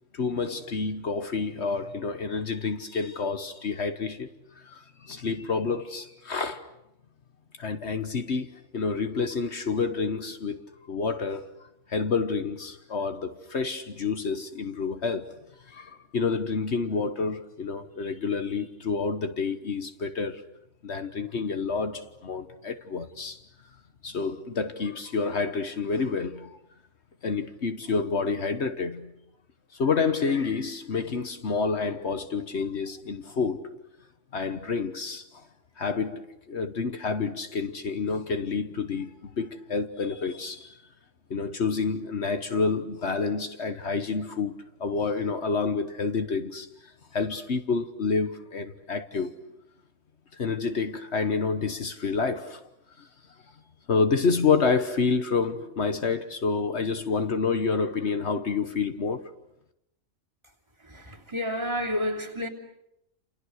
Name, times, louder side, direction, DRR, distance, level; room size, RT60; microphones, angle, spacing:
voice 1, 0.1-4.3 4.5-6.7 7.6-11.6 11.9-15.4 15.7-20.4 20.8-23.4 24.0-26.6 27.2-29.1 29.7-33.8 34.3-35.5 35.8-40.8 41.3-49.4 50.3-52.7 53.0-53.1 53.9-59.3, left 4 dB, 65° left, 1.5 m, -29 dB
voice 2, 60.8-62.5, left 1 dB, 20° right, 3.4 m, -30 dB
30.0 x 28.0 x 6.5 m
omnidirectional pair, 1.3 m